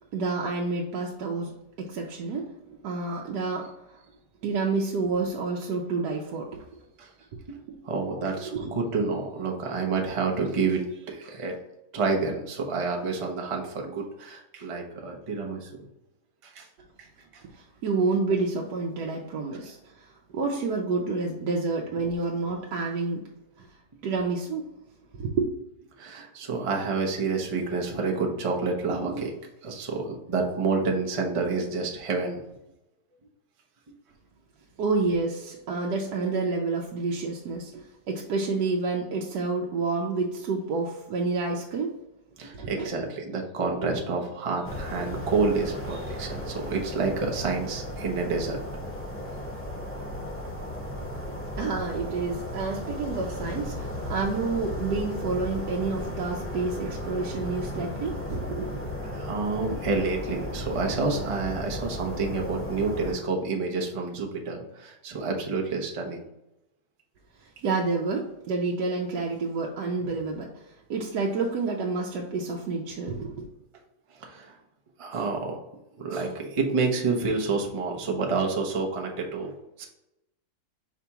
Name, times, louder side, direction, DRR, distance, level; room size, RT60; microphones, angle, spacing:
voice 1, 0.1-4.0 4.4-6.7 7.7-8.7 17.5-23.2 23.6-23.7 24.0-24.6 25.1-25.5 34.8-41.9 42.5-42.9 51.6-58.8 67.4-73.5, right 3 dB, 75° right, -1 dB, 1.2 m, -29 dB
voice 2, 7.8-11.6 11.9-15.7 16.5-16.7 17.0-17.1 26.0-29.3 29.6-32.4 42.4-48.6 59.0-66.2 74.2-74.5 75.0-75.6 76.0-79.5 79.8-79.9, right 4 dB, 40° right, 1 dB, 0.4 m, -29 dB
sound 1, 44.6-63.1, left 1 dB, 10° left, 0.8 m, -35 dB
5.0 x 3.5 x 2.9 m, 0.89 s
omnidirectional pair, 1.8 m